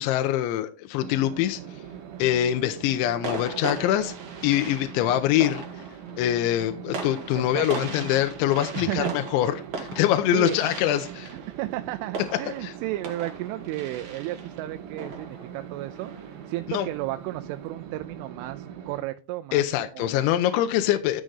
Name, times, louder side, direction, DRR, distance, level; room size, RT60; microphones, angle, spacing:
voice 1, 0.0-1.6 2.2-4.1 4.4-5.6 6.2-11.3 12.6-12.7 16.7-16.9 19.5-21.2, left 12 dB, 80° left, 3.0 m, -24 dB
sound 1, 1.0-19.0, right 8 dB, 65° right, 2.6 m, -42 dB
sound 2, 1.7-2.3 3.2-16.6, right 4 dB, 50° right, 2.6 m, -39 dB
voice 2, 7.3-7.9 8.7-9.2 10.3-10.6 11.3-16.1 16.5-20.3, right 16 dB, 80° right, 3.0 m, -33 dB
13.0 x 6.2 x 4.0 m
omnidirectional pair, 5.7 m